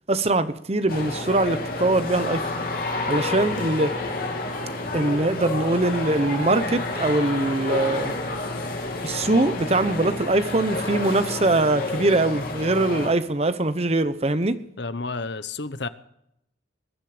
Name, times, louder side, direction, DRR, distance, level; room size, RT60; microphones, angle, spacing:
voice 1, 0.1-2.5 3.1-3.9 4.9-8.1 9.0-14.6, right 2 dB, 35° right, 12 dB, 0.9 m, -22 dB
sound 1, 0.9-13.1, left 2 dB, 55° left, 3.1 m, -29 dB
voice 2, 14.8-15.9, left 3 dB, 70° left, 14 dB, 0.9 m, -31 dB
21.0 x 10.5 x 5.0 m, 0.78 s
head